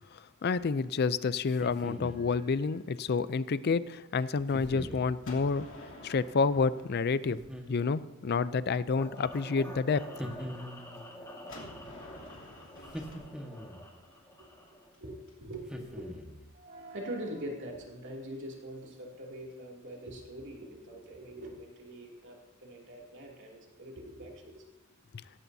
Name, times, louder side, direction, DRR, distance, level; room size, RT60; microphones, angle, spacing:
voice 1, 0.4-5.7 6.0-7.4 7.7-10.1, left 4 dB, 50° left, 16 dB, 0.5 m, -29 dB
sound 1, 1.5-2.3 4.5-5.1 7.3-8.1 10.2-11.1 12.9-13.9 15.7-16.5, equal, 5° right, 1.4 m, -42 dB
voice 2, 2.0-2.5 14.6-14.7 15.0-16.1 16.5-24.6, right 1 dB, 60° right, -1 dB, 2.7 m, -43 dB
Gunshot gunfire, 5.2-8.1 11.5-15.3, left 1 dB, 65° left, 3.0 m, -50 dB
sound 2, 9.0-14.9, equal, 15° left, 1.9 m, -48 dB
17.0 x 15.0 x 2.8 m, 1.1 s
head